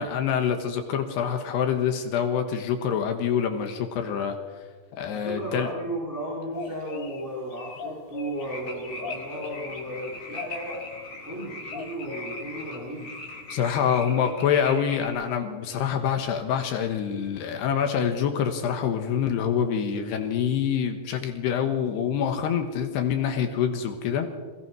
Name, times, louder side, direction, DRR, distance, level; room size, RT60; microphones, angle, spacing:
voice 1, 0.0-4.4 5.0-5.7 13.5-24.4, left 8 dB, 75° left, 6 dB, 3.4 m, -26 dB
voice 2, 5.1-10.8 11.2-13.1 13.8-14.7, right 1 dB, 5° right, -5 dB, 4.2 m, -35 dB
sound 1, 6.5-7.2 7.5-8.4 8.8-9.8 10.3-10.9 11.7-12.2, left 6 dB, 55° left, 2.9 m, -38 dB
sound 2, 8.4-15.1, left 2 dB, 30° left, 3.8 m, -40 dB
27.0 x 17.5 x 6.1 m, 1.4 s
omnidirectional pair, 4.8 m